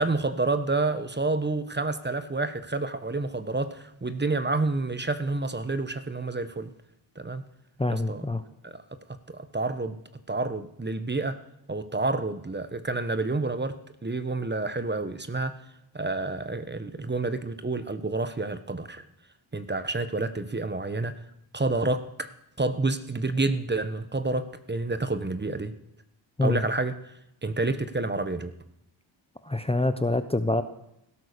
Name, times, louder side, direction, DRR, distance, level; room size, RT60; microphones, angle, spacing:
voice 1, 0.0-6.7 7.2-7.4 7.9-8.3 8.6-8.8 9.3-10.0 10.3-11.4 11.7-13.8 14.0-15.5 15.9-19.0 19.5-21.1 21.5-22.3 22.6-25.7 26.4-27.0 27.4-28.5, right 3 dB, 20° right, 12 dB, 1.1 m, -29 dB
voice 2, 7.8-8.4 26.4-26.6 29.4-30.6, left 2 dB, 10° left, 10 dB, 0.9 m, -25 dB
17.0 x 12.5 x 6.7 m, 0.80 s
cardioid pair, 80°, 47 cm